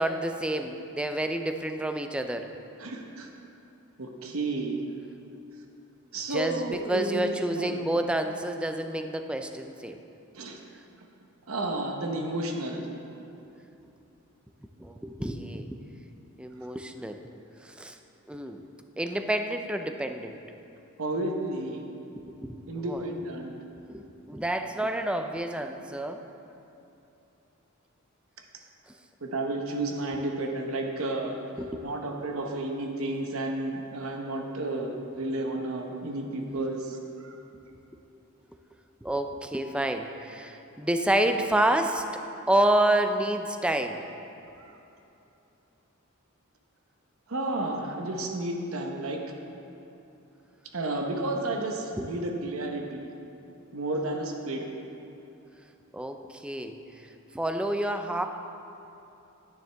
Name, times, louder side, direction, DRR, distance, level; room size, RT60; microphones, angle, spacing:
voice 1, 0.0-2.5 6.3-10.0 14.8-15.8 16.4-17.2 17.6-18.0 18.3-18.6 19.0-20.4 22.4-23.0 23.9-26.2 31.6-31.8 39.0-42.0 42.5-44.0 52.0-52.1 55.9-56.7 57.3-58.3, right 1 dB, 5° right, 6 dB, 0.4 m, -28 dB
voice 2, 2.8-3.3 4.0-4.8 6.1-7.8 10.3-10.6 11.5-12.9 21.0-21.9 22.7-23.6 29.2-31.3 31.8-37.4 44.6-44.7 47.3-49.2 50.7-53.1 53.7-54.7, right 2 dB, 85° right, 2 dB, 0.9 m, -32 dB
10.0 x 9.2 x 3.4 m, 2.9 s
head